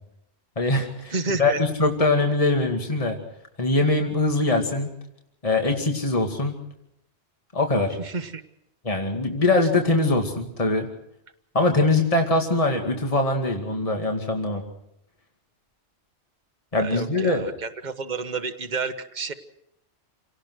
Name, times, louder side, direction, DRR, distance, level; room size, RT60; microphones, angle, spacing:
voice 1, 0.6-3.2 3.6-4.9 5.4-6.6 7.5-8.0 8.8-10.9 11.5-14.6 16.7-17.4, left 2 dB, 30° left, 3 dB, 2.3 m, -22 dB
voice 2, 1.1-1.6 8.0-8.4 16.8-19.3, right 4 dB, 40° right, 8 dB, 1.5 m, -30 dB
28.0 x 18.5 x 6.3 m, 0.78 s
omnidirectional pair, 1.2 m